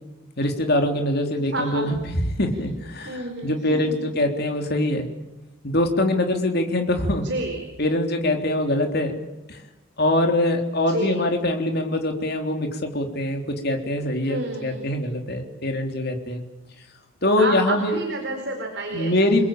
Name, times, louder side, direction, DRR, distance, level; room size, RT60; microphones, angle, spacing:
voice 1, 0.4-2.0 2.4-3.1 3.4-5.1 5.6-7.3 7.8-9.1 9.5-9.6 10.0-16.4 17.2-18.0 18.9-19.4, left 1 dB, 45° left, 4 dB, 3.6 m, -23 dB
voice 2, 1.3-1.9 3.0-4.1 7.2-7.6 10.8-11.3 14.2-14.9 17.4-19.3, right 1 dB, 55° right, 3 dB, 4.4 m, -30 dB
29.0 x 21.0 x 9.0 m, 1.0 s
head